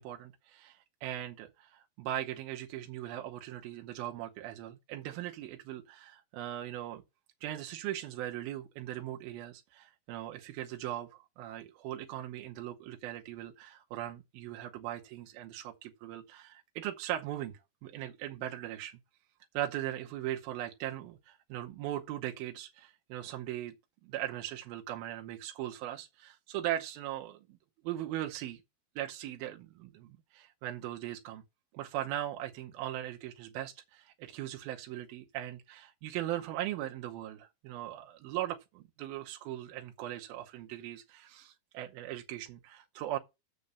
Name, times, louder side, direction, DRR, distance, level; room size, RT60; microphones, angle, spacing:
voice 1, 0.0-7.0 7.4-19.0 19.5-23.7 24.0-27.6 27.8-28.6 29.0-31.4 31.7-43.2, right 13 dB, 80° right, 2.7 m, -39 dB
6.7 x 6.2 x 6.9 m
omnidirectional pair, 4.3 m